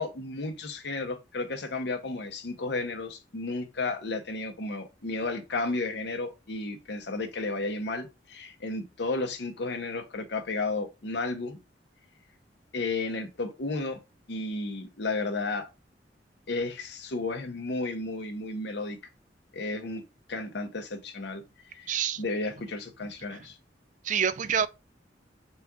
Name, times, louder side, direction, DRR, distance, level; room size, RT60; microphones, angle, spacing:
voice 1, 0.0-11.6 12.7-14.0 14.3-15.7 16.5-19.0 19.5-20.0 20.3-21.4 21.7-21.9 22.2-23.6, left 3 dB, 70° left, 0.8 m, -33 dB
voice 2, 21.9-22.2 23.3-23.4 24.0-24.7, right 7 dB, 45° right, 0.3 m, -27 dB
4.1 x 2.4 x 4.6 m
head